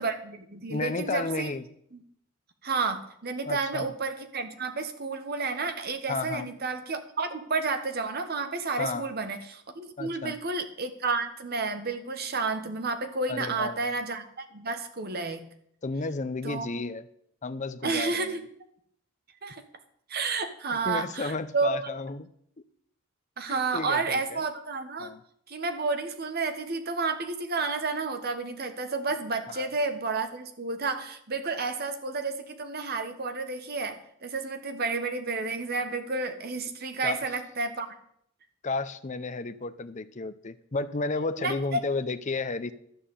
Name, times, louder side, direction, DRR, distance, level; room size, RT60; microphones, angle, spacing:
voice 1, 0.0-1.5 1.9-2.0 2.6-15.4 16.4-16.7 17.8-18.5 19.4-19.6 20.1-21.8 23.4-25.1 25.5-37.9 41.4-41.8, right 4 dB, 45° right, 8 dB, 1.2 m, -31 dB
voice 2, 0.7-1.6 3.5-3.9 6.1-6.5 8.8-9.1 10.0-10.4 13.3-13.9 15.8-17.0 17.4-18.4 20.7-22.3 23.5-24.4 25.0-25.2 29.5-29.7 37.0-37.2 38.6-42.7, left 3 dB, 35° left, 11 dB, 0.6 m, -32 dB
12.0 x 5.8 x 8.2 m, 0.70 s
head